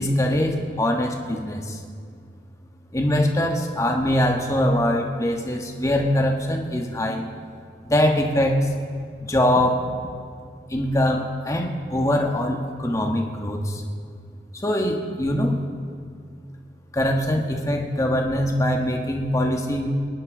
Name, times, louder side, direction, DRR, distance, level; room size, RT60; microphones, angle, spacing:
voice 1, 0.0-1.8 2.9-7.2 7.8-8.7 9.2-9.8 10.7-13.8 14.6-15.6 16.9-19.9, left 1 dB, 20° left, 2 dB, 1.3 m, -22 dB
24.0 x 11.0 x 3.8 m, 2.2 s
head